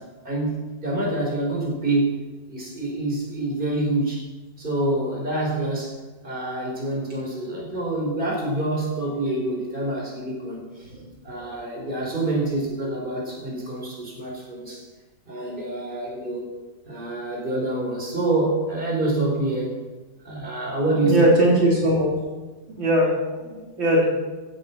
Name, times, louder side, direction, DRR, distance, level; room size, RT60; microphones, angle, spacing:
voice 1, 0.0-2.2 2.5-4.2 4.6-5.9 6.2-10.9 11.2-14.8 15.3-16.5 16.9-19.8 20.2-21.3, right 2 dB, 25° right, -2 dB, 5.1 m, -26 dB
voice 2, 21.0-22.1 22.8-24.0, right 1 dB, 65° right, -4 dB, 4.7 m, -20 dB
17.0 x 12.0 x 6.1 m, 1.2 s
omnidirectional pair, 2.2 m